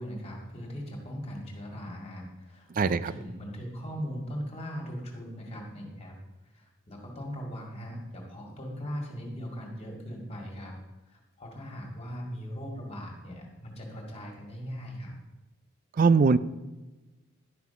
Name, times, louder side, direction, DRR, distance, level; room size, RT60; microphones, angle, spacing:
voice 1, 0.0-6.2 6.4-10.8 11.1-15.1, equal, 30° left, 0 dB, 2.1 m, -39 dB
voice 2, 2.8-3.1 16.0-16.4, right 4 dB, 40° right, 16 dB, 0.4 m, -21 dB
11.0 x 6.0 x 5.7 m, 1.1 s
head